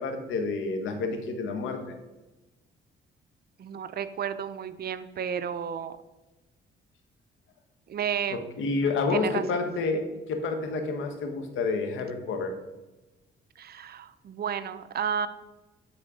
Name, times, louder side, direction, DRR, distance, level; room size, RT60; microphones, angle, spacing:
voice 1, 0.0-2.0 8.3-12.5, left 3 dB, 80° left, 6 dB, 1.3 m, -29 dB
voice 2, 3.6-6.0 7.9-8.4 9.1-9.4 13.6-15.3, right 8 dB, 50° right, 12 dB, 0.6 m, -32 dB
9.2 x 4.3 x 5.0 m, 1.1 s
cardioid pair, 90°, 20 cm